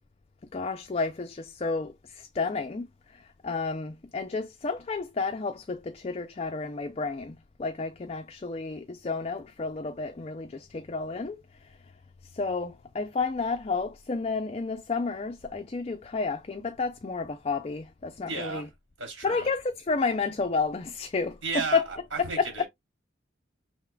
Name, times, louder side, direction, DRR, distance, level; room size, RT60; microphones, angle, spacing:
voice 1, 0.5-2.9 3.1-11.8 12.3-18.7 19.2-21.8 22.2-22.6, left 4 dB, 30° left, 0.4 m, -31 dB
voice 2, 18.2-18.7 19.0-19.5 21.4-22.7, right 4 dB, 75° right, 2.9 m, -34 dB
5.6 x 3.5 x 2.2 m
head